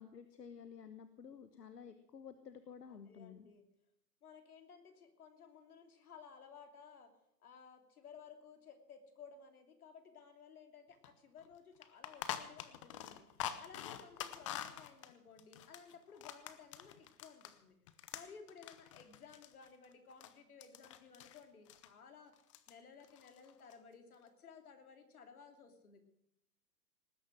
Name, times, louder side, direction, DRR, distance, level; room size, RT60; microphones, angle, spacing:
voice 1, 0.0-3.5, left 7 dB, 75° left, 10 dB, 1.4 m, -52 dB
voice 2, 2.9-3.6 4.2-7.1 7.4-13.3 13.6-17.8 18.1-22.3 22.7-26.0, left 6 dB, 60° left, 6 dB, 3.0 m, -57 dB
sound 1, 11.0-11.1 11.4-11.5 11.8-17.6 17.9-20.3 20.6-21.4 21.7-21.9 22.3-22.7 23.0-23.7, left 11 dB, 20° left, 0.6 m, -46 dB
19.0 x 9.8 x 6.4 m, 0.76 s
hypercardioid pair, 130°, 49 cm